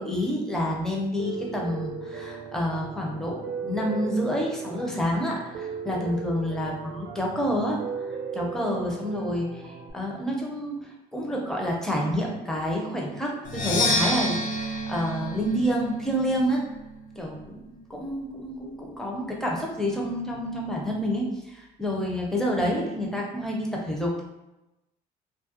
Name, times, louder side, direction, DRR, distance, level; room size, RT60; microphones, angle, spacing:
voice 1, 0.0-7.8 8.3-16.6 17.2-24.2, equal, 5° left, -2 dB, 0.5 m, -28 dB
Piano, 1.2-9.9, right 5 dB, 75° right, 0.4 m, -37 dB
Percussion, 13.4-17.2, left 1 dB, 50° left, 0.5 m, -29 dB
2.2 x 2.0 x 2.7 m, 0.96 s
cardioid pair, 110°, 17 cm